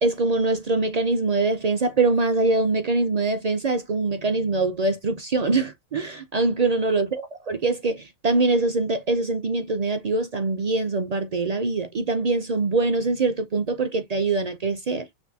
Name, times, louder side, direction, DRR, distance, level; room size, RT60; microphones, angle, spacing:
voice 1, 0.0-7.1 7.5-15.1, right 3 dB, 50° right, 0.5 m, -23 dB
6.0 x 2.6 x 2.8 m
omnidirectional pair, 1.4 m